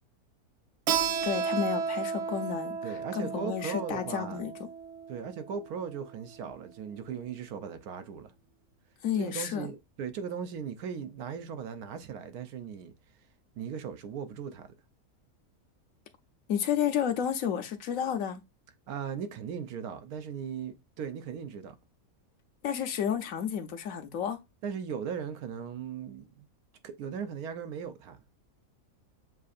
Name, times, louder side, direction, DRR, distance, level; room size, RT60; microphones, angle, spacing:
Keyboard (musical), 0.9-6.1, right 6 dB, 60° right, 0.7 m, -33 dB
voice 1, 1.2-4.7 9.0-9.7 16.5-18.4 22.6-24.4, left 8 dB, 70° left, 1.1 m, -31 dB
voice 2, 2.8-4.4 5.1-8.3 9.1-12.9 13.6-14.7 18.9-21.7 24.6-26.5 26.8-28.2, right 7 dB, 85° right, 1.2 m, -38 dB
7.3 x 2.5 x 2.4 m
omnidirectional pair, 1.6 m